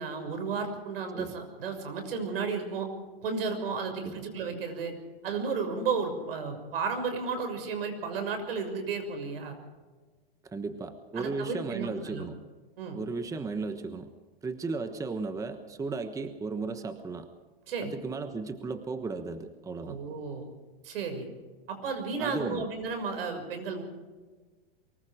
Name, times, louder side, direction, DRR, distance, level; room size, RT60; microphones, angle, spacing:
voice 1, 0.0-2.9 3.2-4.9 5.2-9.6 11.2-12.2 12.8-13.0 17.7-17.9 19.8-20.5 20.8-21.3 21.7-23.8, right 5 dB, 75° right, 6 dB, 6.3 m, -33 dB
voice 2, 10.5-12.4 12.9-14.1 14.4-17.3 17.8-20.0 22.2-22.7, right 4 dB, 10° right, 9 dB, 1.2 m, -35 dB
24.0 x 21.5 x 5.0 m, 1.3 s
hypercardioid pair, 135°, 29 cm